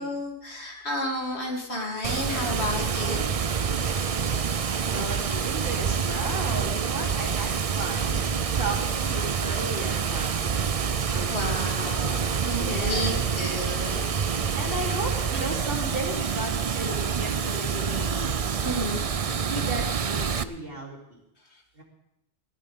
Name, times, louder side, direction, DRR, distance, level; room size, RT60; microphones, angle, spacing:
voice 1, 0.0-3.2 3.7-4.7 11.3-14.5 18.6-19.0 21.5-21.6, left 1 dB, 85° left, -1 dB, 3.4 m, -32 dB
Water, 2.0-20.4, right 6 dB, 40° right, 0.6 m, -27 dB
voice 2, 4.9-8.2 8.5-10.7 11.1-12.1 12.5-13.2 14.5-18.4 19.5-21.2 21.8-21.9, right 1 dB, 60° right, -1 dB, 3.6 m, -35 dB
21.0 x 16.0 x 3.7 m, 0.81 s
omnidirectional pair, 1.1 m